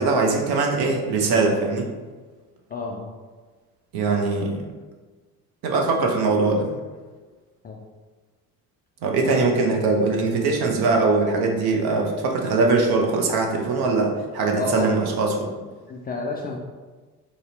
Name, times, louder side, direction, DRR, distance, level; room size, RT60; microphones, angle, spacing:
voice 1, 0.0-1.9 3.9-4.6 5.6-6.7 9.0-15.5, right 3 dB, 55° right, 1 dB, 0.8 m, -21 dB
voice 2, 2.7-3.1 7.6-7.8 9.2-9.5 14.5-15.1 15.9-16.6, left 4 dB, 20° left, 0 dB, 0.3 m, -30 dB
4.0 x 2.0 x 3.9 m, 1.3 s
figure-of-eight pair, 50°, 47 cm